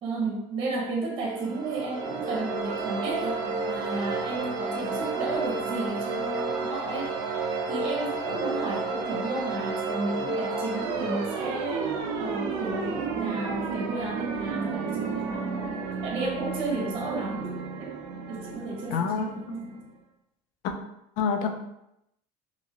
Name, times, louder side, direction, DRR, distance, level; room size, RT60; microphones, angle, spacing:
voice 1, 0.0-11.9 12.2-15.8 16.0-17.9 18.3-19.8, right 2 dB, 40° right, -2 dB, 1.0 m, -33 dB
sound 1, 1.3-19.9, right 4 dB, 90° right, 0.5 m, -32 dB
voice 2, 18.9-19.6 20.6-20.7 21.2-21.6, left 6 dB, 70° left, 5 dB, 0.4 m, -28 dB
2.8 x 2.6 x 2.8 m, 0.84 s
cardioid pair, 160°, 14 cm